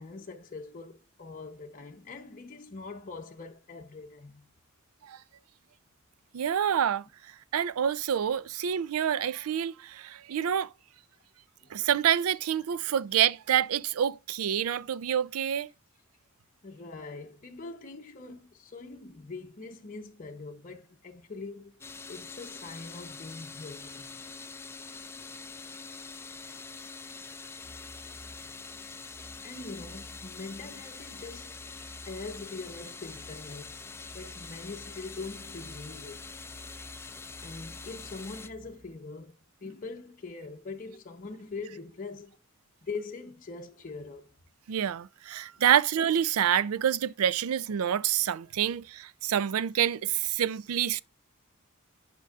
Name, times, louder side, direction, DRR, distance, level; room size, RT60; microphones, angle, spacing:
voice 1, 0.0-4.5 11.6-11.7 16.6-21.8 22.1-24.1 26.4-26.6 29.4-31.6 32.0-33.8 34.1-36.3 37.4-39.3 39.6-42.4 42.8-44.3, left 3 dB, 40° left, 0.7 m, -42 dB
voice 2, 6.3-7.1 7.5-10.7 11.7-15.7 44.7-51.0, right 9 dB, 85° right, 0.4 m, -27 dB
sound 1, 21.8-38.5, left 4 dB, 10° left, 0.4 m, -45 dB
sound 2, 27.6-39.0, equal, 35° right, 1.3 m, -52 dB
9.1 x 5.2 x 2.3 m
head